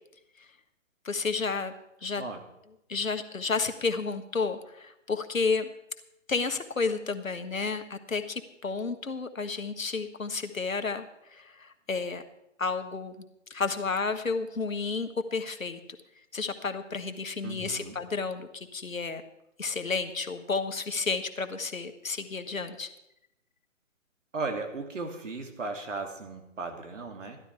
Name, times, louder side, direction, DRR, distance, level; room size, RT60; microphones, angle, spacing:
voice 1, 1.0-1.7 2.0-2.2 2.9-5.7 6.3-12.2 12.6-13.2 13.5-15.8 16.3-19.2 19.6-22.9, left 4 dB, 85° left, 8 dB, 1.5 m, -31 dB
voice 2, 17.4-18.0 24.3-27.4, right 3 dB, 70° right, 4 dB, 2.8 m, -36 dB
14.5 x 12.0 x 4.7 m, 0.83 s
figure-of-eight pair, 140°, 39 cm